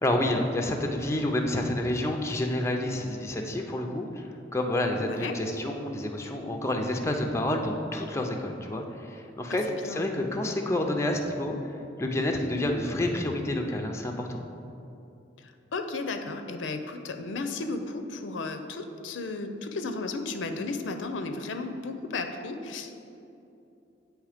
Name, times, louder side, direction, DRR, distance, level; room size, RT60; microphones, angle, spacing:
voice 1, 0.0-14.4, left 1 dB, 15° left, 3 dB, 0.4 m, -29 dB
voice 2, 5.0-5.4 9.5-9.6 9.8-10.1 12.5-12.7 15.4-23.0, left 3 dB, 80° left, 7 dB, 0.5 m, -34 dB
8.6 x 3.2 x 4.9 m, 2.7 s
head